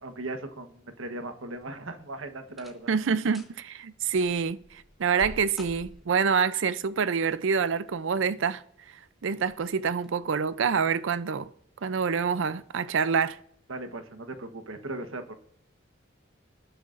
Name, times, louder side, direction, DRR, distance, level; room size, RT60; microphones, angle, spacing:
voice 1, 0.0-2.9 13.7-15.3, right 2 dB, 85° right, 1.2 m, -38 dB
sound 1, 2.5-2.9 3.2-3.6 4.1-6.3 7.5-8.1 8.6-8.7 9.4-9.6 10.0-10.1, equal, ahead, 2.1 m, -47 dB
voice 2, 2.9-11.5 11.8-13.4, right 6 dB, 70° right, 0.5 m, -27 dB
19.5 x 9.8 x 2.6 m
head